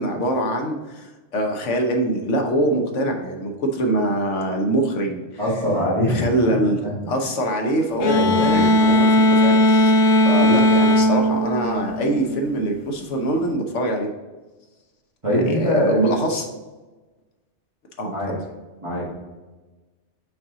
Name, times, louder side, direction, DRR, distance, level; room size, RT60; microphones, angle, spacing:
voice 1, 0.0-5.2 6.1-6.8 7.1-9.9 10.2-14.1 15.3-16.5 18.0-18.4, right 1 dB, 85° left, 3 dB, 1.3 m, -23 dB
voice 2, 5.4-6.9 8.0-8.7 15.2-16.2 18.1-18.4 18.8-19.1, equal, 25° right, -9 dB, 1.8 m, -23 dB
sound 1, 8.0-12.5, left 1 dB, 70° left, 0.9 m, -17 dB
5.8 x 4.3 x 3.9 m, 1.2 s
omnidirectional pair, 1.2 m